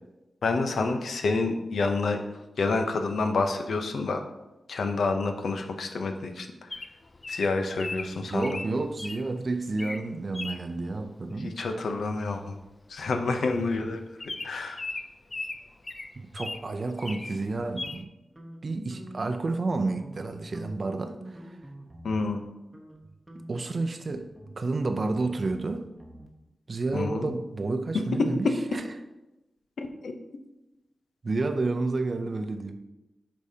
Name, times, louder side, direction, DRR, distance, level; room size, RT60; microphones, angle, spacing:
voice 1, 0.4-2.2 2.6-4.2 4.7-6.8 7.3-8.6 11.4-12.6 12.9-14.0 14.4-14.8 22.0-22.4 26.9-27.3 29.8-30.1, left 3 dB, 80° left, 0.7 m, -28 dB
Bird vocalization bird call bird song, 6.7-9.2 9.7-10.0 10.3-10.6 12.1-12.3 12.6-12.7 13.0-13.2 13.6-13.7 14.2-16.6 17.0-17.4 17.8-18.0, left 2 dB, 30° left, 0.4 m, -37 dB
voice 2, 8.2-11.6 16.3-18.1 18.6-21.4 23.5-24.3 24.6-25.8 26.7-28.5 28.7-28.8 31.2-32.7, right 3 dB, 40° right, 0.5 m, -30 dB
sound 1, 17.5-19.4 19.7-20.3 20.5-22.4 22.7-23.0 23.3-26.3, right 1 dB, 15° right, 0.9 m, -47 dB
8.2 x 5.3 x 2.8 m
wide cardioid pair, 135°, 0 cm